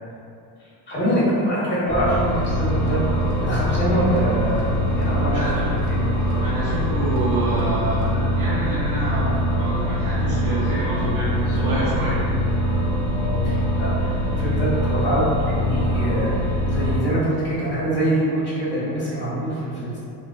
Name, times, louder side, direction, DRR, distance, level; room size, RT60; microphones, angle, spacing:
voice 1, 0.9-3.0 3.4-5.4 5.9-6.0 11.6-11.9 13.1-20.0, right 1 dB, 20° left, -9 dB, 0.9 m, -24 dB
sound 1, 1.9-17.0, equal, 20° right, 0.9 m, -23 dB
sound 2, 2.1-8.1, left 1 dB, 80° left, 0.8 m, -36 dB
voice 2, 5.3-5.7 6.4-12.2, right 2 dB, 65° right, -10 dB, 0.8 m, -28 dB
2.4 x 2.3 x 2.3 m, 2.5 s
cardioid pair, 110°, 50 cm